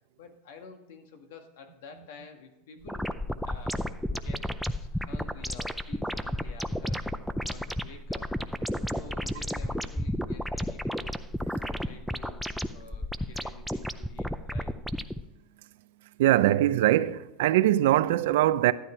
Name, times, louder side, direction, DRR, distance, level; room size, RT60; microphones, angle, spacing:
voice 1, 0.2-3.1 3.4-4.5 4.8-7.1 7.4-8.6 8.9-11.2 11.6-14.8, left 5 dB, 75° left, 1.8 m, -50 dB
sound 1, 2.8-15.2, equal, ahead, 0.5 m, -33 dB
voice 2, 16.2-18.7, right 14 dB, 75° right, 0.5 m, -22 dB
12.0 x 9.4 x 4.5 m
supercardioid pair, 135°, 0 cm